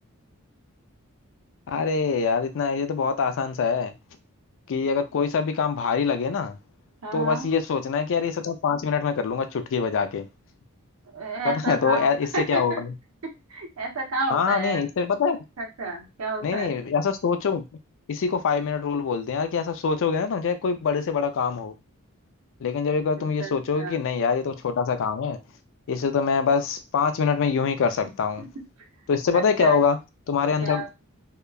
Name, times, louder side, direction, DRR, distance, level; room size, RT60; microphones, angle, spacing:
voice 1, 1.7-3.9 4.7-6.6 7.1-10.3 11.4-12.9 14.3-15.4 16.4-17.6 18.1-21.7 22.6-25.4 25.9-28.4 29.1-30.0 30.3-30.8, left 5 dB, 60° left, 0.4 m, -24 dB
voice 2, 7.0-7.5 11.1-12.8 13.5-14.8 15.6-16.7 23.4-24.0 27.8-27.9 29.3-29.8 30.6-30.9, right 3 dB, 70° right, 0.8 m, -31 dB
2.8 x 2.2 x 2.3 m
head